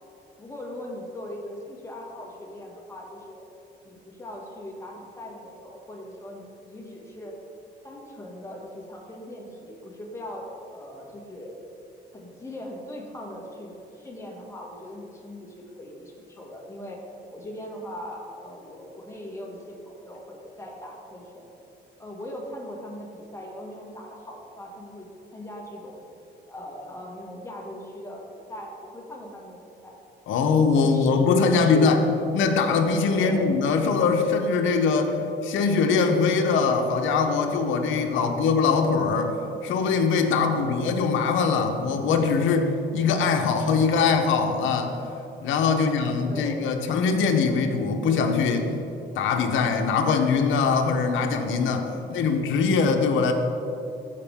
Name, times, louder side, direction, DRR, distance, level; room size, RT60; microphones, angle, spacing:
voice 1, 0.4-3.5 3.8-7.3 7.8-11.5 12.1-17.0 17.3-21.5 22.0-26.0 26.4-28.2 28.5-30.0 30.8-32.0 33.1-33.5 35.2-35.3 38.1-38.4 40.5-40.8 45.7-46.6 52.0-52.4, left 1 dB, 15° left, -2 dB, 1.9 m, -39 dB
voice 2, 30.3-32.0 32.3-35.2 35.4-39.3 39.6-45.0 45.4-48.7 49.1-53.3, left 5 dB, 80° left, 4 dB, 0.8 m, -22 dB
14.5 x 5.0 x 3.6 m, 2.9 s
cardioid pair, 90°, 20 cm